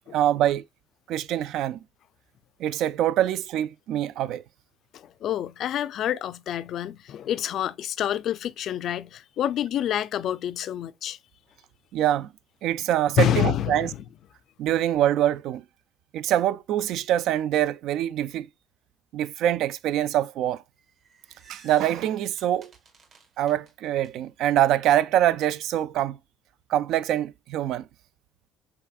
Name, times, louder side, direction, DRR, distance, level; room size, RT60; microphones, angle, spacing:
voice 1, 0.1-0.6 1.1-1.8 2.6-4.4 11.9-12.3 12.6-13.9 14.6-15.6 16.1-18.5 19.1-20.6 21.5-22.7 23.4-26.2 26.7-27.8, right 12 dB, 70° right, 0.3 m, -24 dB
voice 2, 4.9-11.2 13.2-14.0, left 11 dB, 55° left, 0.4 m, -27 dB
sound 1, 20.8-24.1, right 4 dB, 50° right, 1.5 m, -53 dB
5.8 x 3.5 x 2.3 m
cardioid pair, 120°, 0 cm